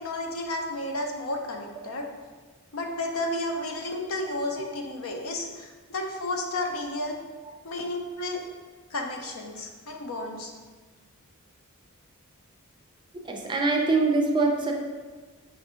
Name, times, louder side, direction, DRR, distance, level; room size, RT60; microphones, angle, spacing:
voice 1, 0.0-2.1 2.7-7.2 7.6-8.4 8.9-10.5, left 2 dB, 65° left, 2 dB, 0.6 m, -32 dB
voice 2, 13.2-14.7, right 3 dB, 20° right, 1 dB, 0.5 m, -23 dB
5.6 x 2.6 x 3.6 m, 1.4 s
head